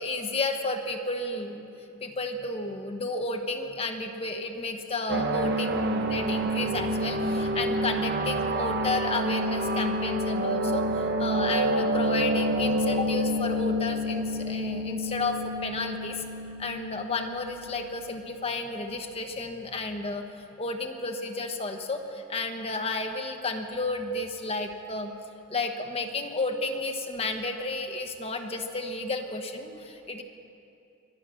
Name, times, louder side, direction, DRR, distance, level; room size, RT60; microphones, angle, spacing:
voice 1, 0.0-1.7 2.0-16.2 16.6-20.2 20.6-25.1 25.5-30.2, left 2 dB, 30° left, 5 dB, 1.0 m, -32 dB
sound 1, 5.1-18.2, right 1 dB, 50° right, 0.8 m, -28 dB
24.0 x 9.2 x 6.3 m, 2.6 s
head